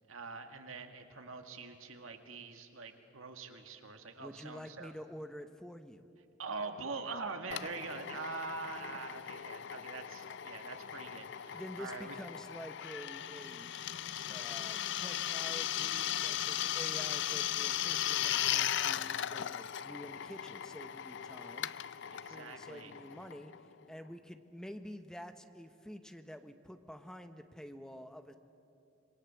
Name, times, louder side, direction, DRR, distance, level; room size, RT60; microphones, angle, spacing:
voice 1, 0.1-4.9 6.4-12.2 22.1-22.9, right 4 dB, 90° right, 6 dB, 1.9 m, -44 dB
voice 2, 4.2-6.0 11.5-13.7 14.3-21.7 22.2-23.5 23.9-28.3, equal, 5° left, 8 dB, 0.9 m, -48 dB
Drill, 7.5-23.8, left 11 dB, 60° left, 0.5 m, -37 dB
27.0 x 22.5 x 7.1 m, 2.5 s
head